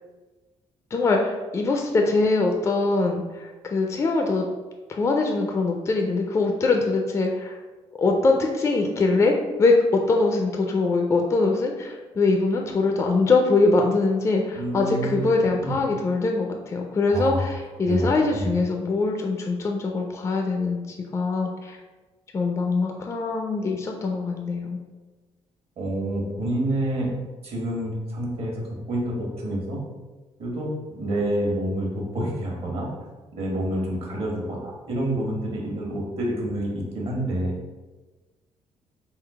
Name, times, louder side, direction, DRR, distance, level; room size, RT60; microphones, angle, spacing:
voice 1, 0.9-4.5 4.9-7.6 8.0-21.8 22.3-24.8, left 3 dB, 25° left, 2 dB, 0.4 m, -23 dB
voice 2, 14.5-15.3 15.6-15.7 17.1-17.4 17.8-18.5 25.8-27.1 27.4-29.8 30.4-32.9 33.3-37.5, right 1 dB, 60° right, -1 dB, 1.3 m, -28 dB
3.7 x 2.7 x 4.7 m, 1.3 s
cardioid pair, 150°, 11 cm